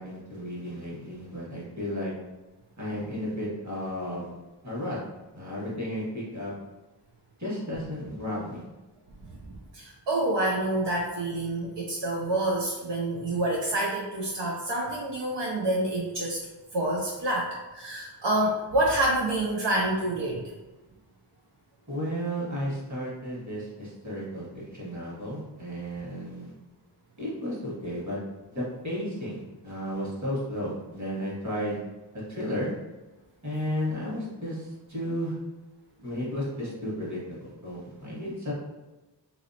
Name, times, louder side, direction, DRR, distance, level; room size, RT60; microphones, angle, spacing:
voice 1, 0.0-2.1 2.8-4.3 4.6-5.0 5.3-6.5 7.4-8.6 21.9-26.5 27.2-28.2 28.5-31.8 32.3-32.7 33.4-35.4 36.0-38.5, equal, 40° right, -6 dB, 1.4 m, -33 dB
voice 2, 9.4-16.4 16.7-20.5, right 1 dB, 80° right, -3 dB, 0.6 m, -28 dB
2.9 x 2.7 x 2.7 m, 1.1 s
wide cardioid pair, 55°, 43 cm